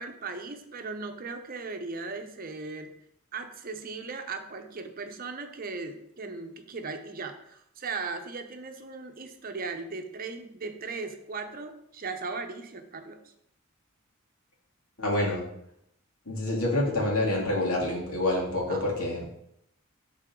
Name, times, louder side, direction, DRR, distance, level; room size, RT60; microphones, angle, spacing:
voice 1, 0.0-2.9 3.3-13.3 18.7-18.9, right 4 dB, 40° right, 6 dB, 0.8 m, -38 dB
voice 2, 15.0-15.4 16.3-19.3, left 1 dB, 80° left, -2 dB, 2.5 m, -27 dB
12.5 x 4.2 x 3.8 m, 0.75 s
head